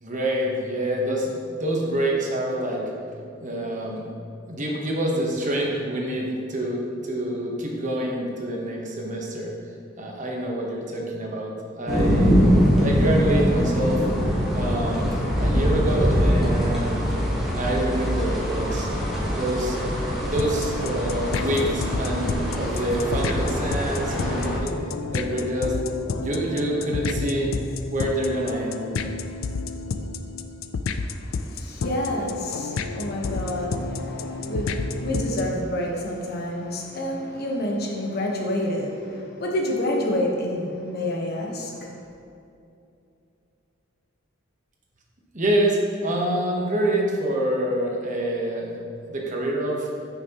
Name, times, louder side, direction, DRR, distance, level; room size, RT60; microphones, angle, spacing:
voice 1, 0.0-1.3 1.6-2.9 3.4-4.1 4.5-9.5 10.0-12.4 12.8-14.0 14.5-15.1 15.4-17.1 17.5-18.9 19.3-19.8 20.3-24.8 25.1-25.7 26.2-27.5 27.9-28.8 45.3-48.8 49.1-49.9, right 1 dB, 40° right, -1 dB, 1.1 m, -26 dB
sound 1, 11.9-24.6, equal, ahead, 1.4 m, -23 dB
sound 2, 20.4-35.6, left 4 dB, 85° left, 0.4 m, -30 dB
voice 2, 30.9-41.9, left 1 dB, 55° left, -1 dB, 1.1 m, -28 dB
9.1 x 5.9 x 3.0 m, 2.7 s
head